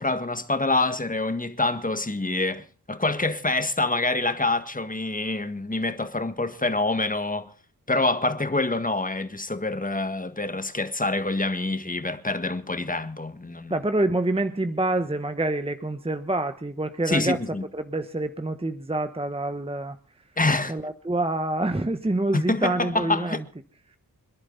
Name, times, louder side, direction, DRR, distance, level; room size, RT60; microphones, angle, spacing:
voice 1, 0.0-7.5 7.9-13.8 17.1-17.6 20.4-20.7 22.3-23.4, left 2 dB, 20° left, 1.7 m, -26 dB
voice 2, 13.7-17.4 17.7-20.0 20.7-23.4, right 2 dB, 15° right, 1.1 m, -27 dB
27.5 x 10.5 x 4.0 m
wide cardioid pair, 60°, 36 cm